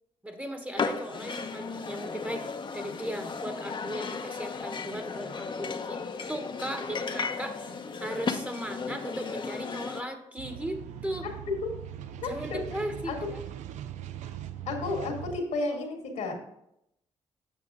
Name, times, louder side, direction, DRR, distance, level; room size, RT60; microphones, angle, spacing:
voice 1, 0.2-2.4 2.7-6.0 6.3-11.3 12.2-13.4, equal, 10° right, 6 dB, 1.3 m, -37 dB
sound 1, 0.8-10.0, left 5 dB, 45° left, 0.8 m, -35 dB
sound 2, 10.4-15.4, right 10 dB, 80° right, 0.5 m, -40 dB
voice 2, 12.2-12.8 13.1-13.3 14.7-16.3, left 3 dB, 80° left, 2 dB, 2.2 m, -32 dB
8.3 x 6.4 x 3.6 m, 0.77 s
supercardioid pair, 60°, 12 cm